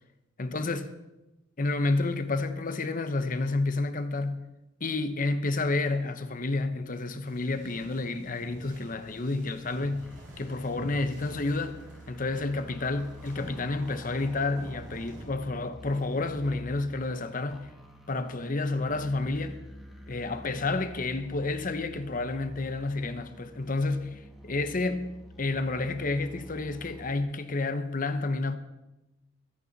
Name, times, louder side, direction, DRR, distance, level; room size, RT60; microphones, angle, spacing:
voice 1, 0.4-0.9 1.6-4.5 4.8-11.8 12.1-17.7 18.1-19.6 20.1-28.6, left 2 dB, 45° left, 0.9 m, -30 dB
sound 1, 7.2-15.3, equal, 45° right, 5.6 m, -48 dB
sound 2, 10.0-27.1, equal, ahead, 1.8 m, -48 dB
22.0 x 8.9 x 4.1 m
head